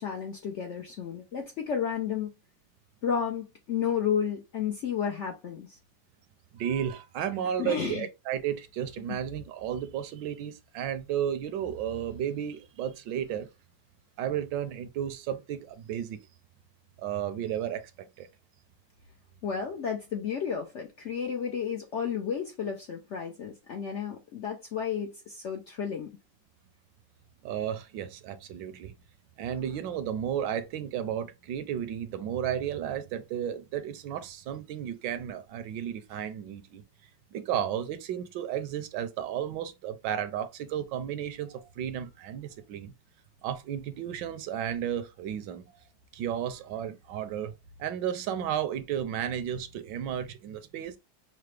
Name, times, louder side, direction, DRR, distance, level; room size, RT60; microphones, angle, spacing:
voice 1, 0.0-2.3 3.0-5.8 7.6-8.1 19.4-26.1, left 7 dB, 80° left, 0.6 m, -32 dB
voice 2, 6.5-13.5 14.2-16.2 17.0-18.3 27.4-28.9 29.4-36.8 37.3-42.9 43.4-45.7 46.1-47.5 47.8-51.0, right 9 dB, 75° right, 1.2 m, -33 dB
5.7 x 2.0 x 3.2 m
omnidirectional pair, 2.1 m